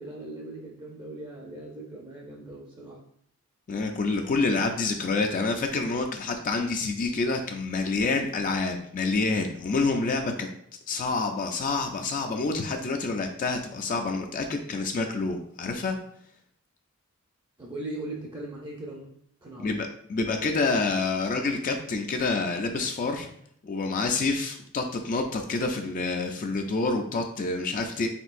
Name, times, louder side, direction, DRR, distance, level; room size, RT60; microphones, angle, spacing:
voice 1, 0.0-3.0 17.6-19.1 19.4-19.7, right 2 dB, 20° right, -2 dB, 0.5 m, -39 dB
voice 2, 3.7-10.5 10.9-16.0 19.6-23.3 23.6-28.1, left 3 dB, 35° left, 4 dB, 0.3 m, -27 dB
4.3 x 3.9 x 2.5 m, 0.67 s
head